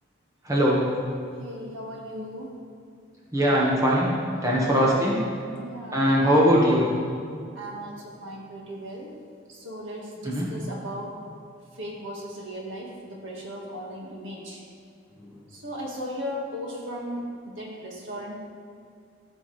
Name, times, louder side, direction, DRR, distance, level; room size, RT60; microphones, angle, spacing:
voice 1, 0.4-0.9 3.3-4.2 4.4-5.2 5.9-6.9 10.2-10.5 15.3-15.4, equal, 15° right, -5 dB, 1.4 m, -21 dB
voice 2, 1.4-2.5 4.7-5.1 5.5-6.3 7.5-9.1 9.5-11.2 11.7-14.6 15.5-18.3, equal, 80° right, -2 dB, 1.7 m, -37 dB
14.0 x 6.2 x 3.3 m, 2.3 s
head